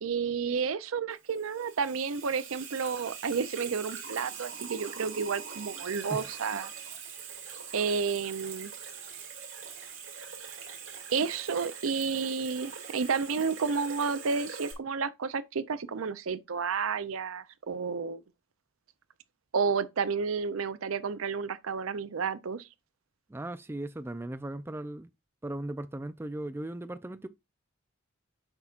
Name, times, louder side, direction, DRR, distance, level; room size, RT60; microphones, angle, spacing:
voice 1, 0.0-6.7 7.7-8.7 11.1-18.2 19.5-22.7, right 5 dB, 90° right, 0.6 m, -31 dB
Water tap faucet / Sink (filling or washing), 1.1-14.7, right 6 dB, 75° right, 2.5 m, -43 dB
voice 2, 23.3-25.1 25.4-27.3, right 1 dB, 10° right, 0.3 m, -37 dB
7.9 x 5.7 x 2.4 m
head